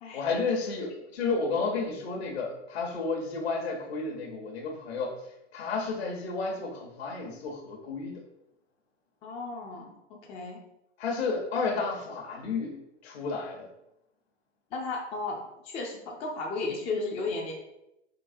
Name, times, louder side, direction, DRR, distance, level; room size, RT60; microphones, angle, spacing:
voice 1, 0.1-5.2 5.5-8.2 11.0-13.7, left 4 dB, 60° left, 2 dB, 1.0 m, -32 dB
voice 2, 9.2-10.6 14.7-17.5, left 3 dB, 15° left, 0 dB, 0.4 m, -34 dB
3.9 x 3.3 x 2.6 m, 0.87 s
figure-of-eight pair, 105°, 35 cm